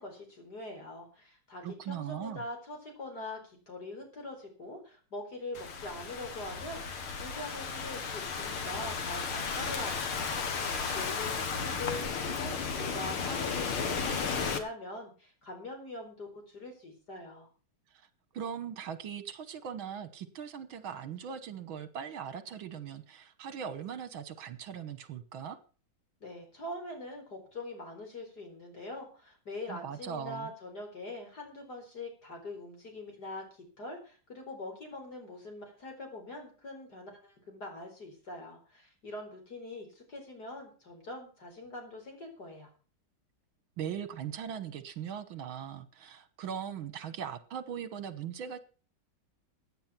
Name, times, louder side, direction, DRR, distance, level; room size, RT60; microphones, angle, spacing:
voice 1, 0.0-17.5 26.2-42.7, left 2 dB, 50° left, 3 dB, 5.1 m, -43 dB
voice 2, 1.6-2.4 17.9-18.1 18.3-25.6 29.7-30.5 43.8-48.6, right 8 dB, 75° right, 13 dB, 2.0 m, -40 dB
Thunderstorm / Rain, 5.6-14.6, left 5 dB, 85° left, 2.6 m, -34 dB
16.0 x 9.0 x 5.9 m, 0.37 s
omnidirectional pair, 2.3 m